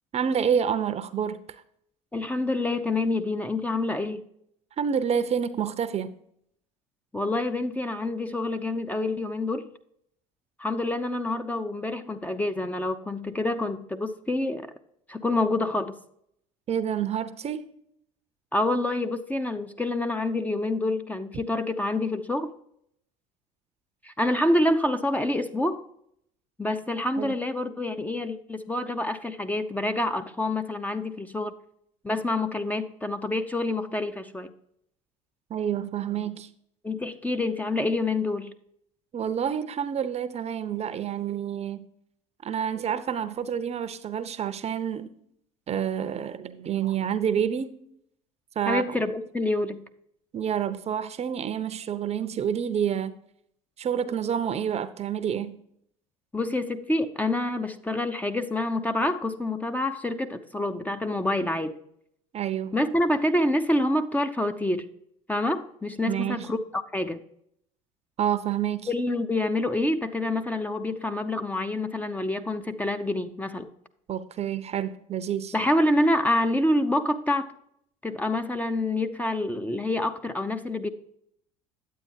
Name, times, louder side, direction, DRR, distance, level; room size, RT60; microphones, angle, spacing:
voice 1, 0.1-1.4 4.8-6.1 16.7-17.7 27.2-27.3 35.5-36.5 39.1-41.9 42.4-45.1 45.7-47.7 48.6-49.0 50.3-53.2 53.8-55.6 62.3-62.7 66.0-66.5 68.2-68.9 74.1-75.5, right 8 dB, 40° right, 0.7 m, -28 dB
voice 2, 2.1-4.2 7.1-9.6 10.6-14.7 15.1-15.9 18.5-22.5 24.0-25.8 26.6-31.5 32.0-34.5 36.8-38.5 48.7-49.8 56.3-61.7 62.7-64.9 65.3-67.2 68.9-73.7 75.5-77.5 78.0-80.9, left 1 dB, 10° left, 0.6 m, -27 dB
9.3 x 8.2 x 2.8 m
hypercardioid pair, 70°, 17 cm